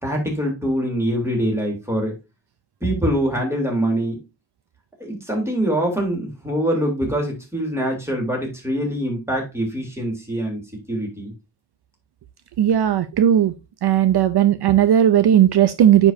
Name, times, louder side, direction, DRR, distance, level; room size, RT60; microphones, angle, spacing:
voice 1, 0.0-2.1 2.8-4.2 5.0-10.6 10.9-11.3, equal, 5° right, 3.4 m, -24 dB
voice 2, 12.6-13.5 13.8-16.1, right 10 dB, 70° right, 0.7 m, -16 dB
9.7 x 5.3 x 2.7 m
wide cardioid pair, 130°, 42 cm